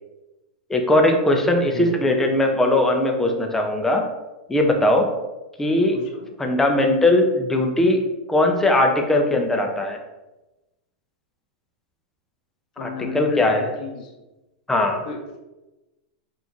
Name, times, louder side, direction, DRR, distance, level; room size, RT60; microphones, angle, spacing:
voice 1, 0.7-4.0 4.5-5.1 5.6-6.0 6.4-8.0 8.3-10.0 12.8-13.7 14.7-15.0, left 1 dB, 10° left, 3 dB, 0.5 m, -19 dB
voice 2, 5.9-6.3 12.8-14.1 15.1-15.4, left 3 dB, 65° left, 1 dB, 0.7 m, -33 dB
4.0 x 2.5 x 2.9 m, 1.0 s
hypercardioid pair, 130°, 5 cm